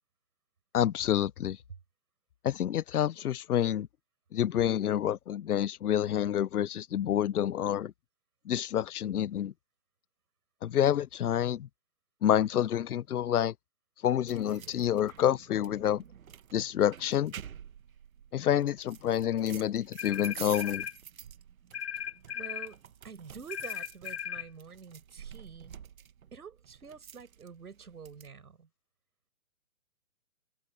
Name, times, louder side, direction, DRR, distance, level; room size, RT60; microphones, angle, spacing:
voice 1, 0.7-1.6 2.4-3.9 4.3-7.9 8.5-9.5 10.6-11.7 12.2-13.5 14.0-16.0 16.5-17.3 18.3-20.9, left 10 dB, 85° left, 0.7 m, -28 dB
sound 1, 14.3-28.3, right 8 dB, 65° right, 1.2 m, -49 dB
sound 2, 20.0-21.0 21.7-22.7 23.5-24.5, left 9 dB, 45° left, 0.8 m, -37 dB
voice 2, 22.3-25.7 26.3-28.7, right 6 dB, 90° right, 5.4 m, -47 dB
hypercardioid pair, 170°, 44 cm